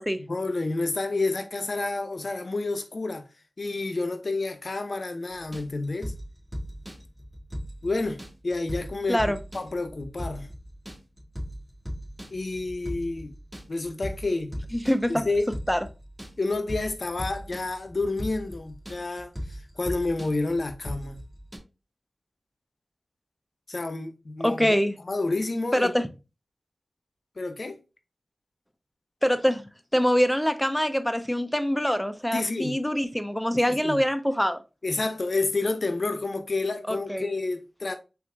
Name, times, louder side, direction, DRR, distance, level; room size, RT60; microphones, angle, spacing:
voice 1, 0.3-3.3 3.6-6.1 7.8-10.5 12.3-13.4 13.7-14.6 15.1-15.5 16.4-21.2 23.7-24.8 25.0-25.9 27.4-27.8 32.3-32.8 33.7-34.0 34.8-38.0, left 3 dB, 65° left, 0.7 m, -29 dB
sound 1, 5.3-21.6, equal, 15° right, 2.1 m, -38 dB
voice 2, 9.1-9.4 14.7-15.2 15.7-15.8 24.4-24.9 25.7-26.1 29.2-34.6 36.9-37.3, equal, 5° left, 0.6 m, -24 dB
4.1 x 2.6 x 3.6 m
cardioid pair, 40°, 0 cm